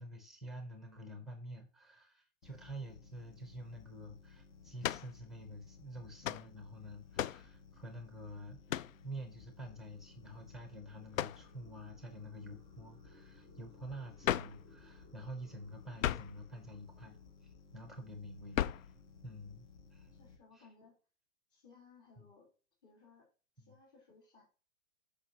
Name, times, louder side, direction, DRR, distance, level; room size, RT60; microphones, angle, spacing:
voice 1, 0.0-17.2 17.4-18.9 19.2-20.1 20.5-20.7 22.2-22.3 23.6-23.7, equal, ahead, 5 dB, 0.6 m, -48 dB
sound 1, 2.4-20.4, left 5 dB, 65° left, 2.0 m, -59 dB
sound 2, 4.8-5.1 6.2-6.5 7.2-7.5 8.7-9.0 11.1-11.5 14.2-14.6 16.0-16.4 18.5-18.9, left 11 dB, 90° left, 0.6 m, -35 dB
sound 3, 8.4-18.4, left 1 dB, 15° left, 2.4 m, -66 dB
voice 2, 20.1-21.0 21.5-22.5 22.8-23.3 23.6-24.4, left 4 dB, 40° left, -1 dB, 3.7 m, -62 dB
12.5 x 5.1 x 2.8 m, 0.35 s
hypercardioid pair, 165°, 38 cm